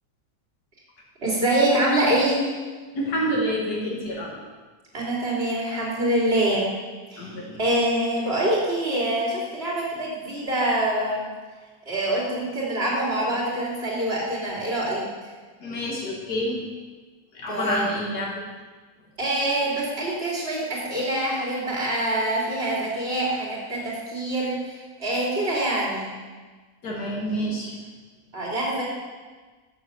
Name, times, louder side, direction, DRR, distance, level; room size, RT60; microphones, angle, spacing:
voice 1, 1.2-2.5 4.9-6.7 7.1-11.3 11.9-15.1 17.5-17.9 19.2-26.1 28.3-28.8, right 1 dB, 40° right, -5 dB, 3.2 m, -25 dB
voice 2, 2.9-4.3 7.2-7.6 15.6-16.6 17.3-18.3 26.8-27.7, equal, 90° left, -2 dB, 2.1 m, -28 dB
7.9 x 6.9 x 6.8 m, 1.4 s
omnidirectional pair, 1.6 m